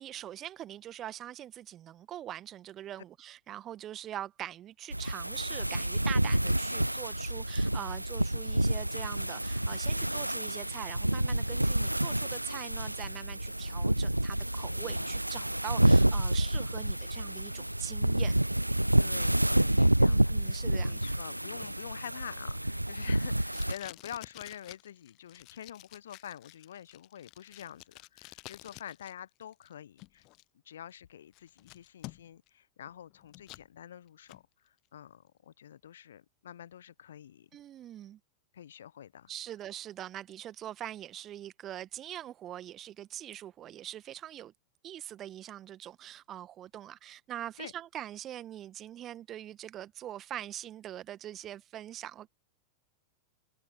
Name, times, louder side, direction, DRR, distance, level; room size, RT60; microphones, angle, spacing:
voice 1, 0.0-18.4 20.0-21.0 37.5-38.2 39.3-44.5 44.8-52.3, right 11 dB, 30° right, 1.7 m, -43 dB
sound 1, 4.9-23.7, right 1 dB, 85° right, 0.3 m, -28 dB
voice 2, 14.7-15.1 19.0-30.2 30.6-37.5 38.5-39.3 47.6-47.7, left 10 dB, 65° left, 0.9 m, -47 dB
Packing tape duct tape, 21.6-29.1 29.4-30.4 30.9-31.0 31.3-32.5 32.9-33.7 34.1-34.4, left 23 dB, 40° left, 0.6 m, -51 dB
figure-of-eight pair, 90°, 0 cm